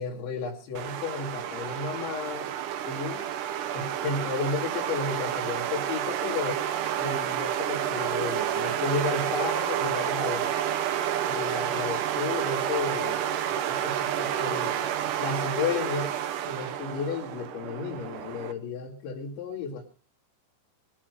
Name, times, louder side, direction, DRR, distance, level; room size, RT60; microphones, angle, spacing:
voice 1, 0.0-2.5 2.9-3.3 3.7-6.6 7.0-10.6 11.3-13.3 13.7-16.2 16.4-19.8, left 5 dB, 80° left, -1 dB, 4.4 m, -33 dB
sound 1, 0.8-18.5, right 10 dB, 75° right, 1.9 m, -30 dB
21.0 x 8.8 x 6.2 m, 0.41 s
omnidirectional pair, 5.2 m